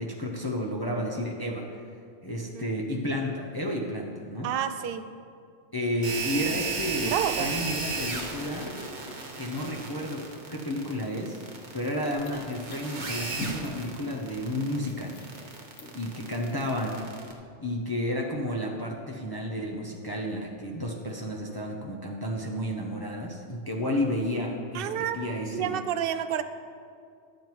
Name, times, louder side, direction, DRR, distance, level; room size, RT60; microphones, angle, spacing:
voice 1, 0.0-1.8 2.2-4.5 5.7-8.7 9.4-10.2 10.5-11.4 11.7-15.2 15.9-17.0 17.6-25.8, equal, 20° left, -1 dB, 0.7 m, -31 dB
voice 2, 4.4-5.1 7.0-7.6 24.7-25.2 25.5-26.4, right 9 dB, 60° right, 10 dB, 0.7 m, -29 dB
sound 1, 6.0-17.3, right 4 dB, 40° right, 1.1 m, -35 dB
sound 2, 6.2-17.0, left 1 dB, 90° left, 1.4 m, -46 dB
11.0 x 7.5 x 4.6 m, 2.3 s
omnidirectional pair, 1.2 m